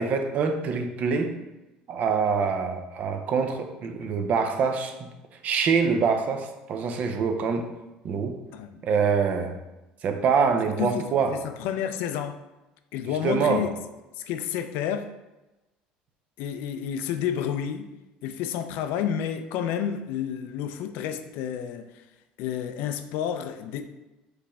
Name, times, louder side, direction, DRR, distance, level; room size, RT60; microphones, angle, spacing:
voice 1, 0.0-1.3 1.9-5.1 5.4-7.7 8.0-8.4 8.8-9.6 10.0-11.3 13.2-13.7, right 5 dB, 50° right, 0.6 m, -25 dB
voice 2, 11.3-12.3 12.9-13.8 14.2-15.1 16.4-17.9 18.2-21.9 22.4-23.8, left 9 dB, 75° left, 0.4 m, -30 dB
4.9 x 3.1 x 3.4 m
supercardioid pair, 105°, 3 cm